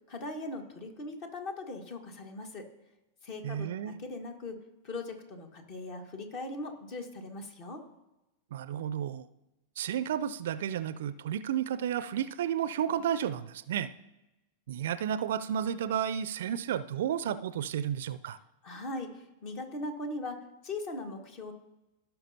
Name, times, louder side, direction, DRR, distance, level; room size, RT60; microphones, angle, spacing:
voice 1, 0.1-2.6 3.2-4.6 4.8-7.8 18.6-20.4 20.6-21.5, left 2 dB, 45° left, 5 dB, 1.6 m, -39 dB
voice 2, 3.4-4.0 8.5-9.3 9.8-13.9 14.7-18.4, right 9 dB, 60° right, 14 dB, 0.4 m, -32 dB
17.0 x 5.8 x 2.8 m, 0.97 s
figure-of-eight pair, 95°, 0 cm